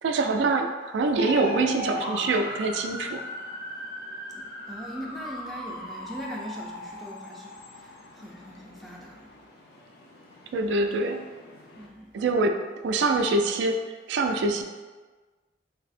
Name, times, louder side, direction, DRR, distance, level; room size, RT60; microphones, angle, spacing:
voice 1, 0.0-3.2 10.5-11.2 12.1-12.6 12.8-13.8 14.1-14.6, right 3 dB, 80° right, 5 dB, 0.3 m, -24 dB
sound 1, 1.2-11.9, left 2 dB, 60° left, 0.5 m, -39 dB
voice 2, 4.3-9.3 11.8-12.1, equal, ahead, -3 dB, 0.3 m, -41 dB
3.3 x 2.0 x 4.0 m, 1.3 s
head